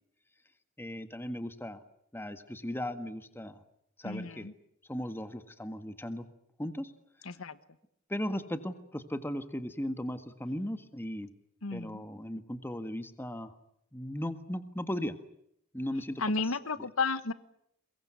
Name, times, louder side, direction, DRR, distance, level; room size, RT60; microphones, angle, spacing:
voice 1, 0.8-1.8 2.1-3.6 4.0-4.5 4.9-6.3 6.6-6.9 8.1-11.3 11.7-13.5 13.9-15.1 15.7-16.9, equal, 10° left, 9 dB, 1.7 m, -37 dB
voice 2, 4.0-4.5 7.3-7.6 11.6-12.0 16.2-17.3, left 4 dB, 85° left, 14 dB, 1.2 m, -32 dB
23.0 x 22.0 x 9.3 m, 0.73 s
head